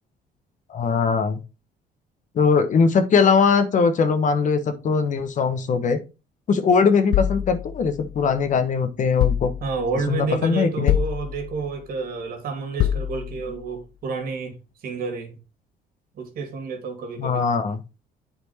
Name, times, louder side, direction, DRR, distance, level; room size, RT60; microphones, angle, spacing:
voice 1, 0.7-1.4 2.3-6.0 6.5-9.5 10.1-10.9 17.2-17.8, left 5 dB, 50° left, 1.1 m, -20 dB
sound 1, 7.1-8.5 9.2-10.0 10.9-11.8 12.8-13.6, left 11 dB, 65° left, 0.5 m, -25 dB
voice 2, 9.6-14.6 14.8-15.3 16.2-17.4, right 4 dB, 60° right, 2.5 m, -29 dB
8.4 x 4.4 x 4.3 m
cardioid pair, 110°, 17 cm